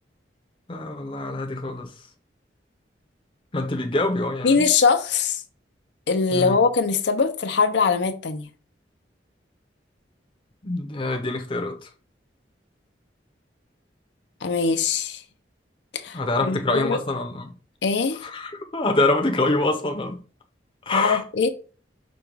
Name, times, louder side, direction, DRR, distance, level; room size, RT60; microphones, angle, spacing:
voice 1, 0.7-1.9 3.5-4.6 6.3-6.6 10.6-11.9 16.1-17.5 18.2-20.2 20.9-21.2, left 2 dB, 30° left, 0.6 m, -25 dB
voice 2, 4.4-5.4 6.1-8.5 14.4-15.2 15.9-17.0 17.8-18.2 20.9-21.5, left 5 dB, 80° left, 0.5 m, -22 dB
5.1 x 2.3 x 4.5 m
head